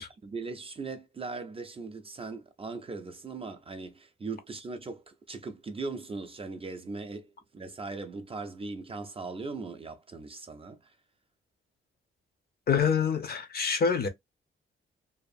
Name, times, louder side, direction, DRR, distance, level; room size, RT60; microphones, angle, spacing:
voice 1, 0.0-10.9, right 3 dB, 25° right, 0.4 m, -39 dB
voice 2, 12.7-14.1, left 6 dB, 50° left, 0.6 m, -26 dB
2.6 x 2.4 x 2.5 m
cardioid pair, 115°, 21 cm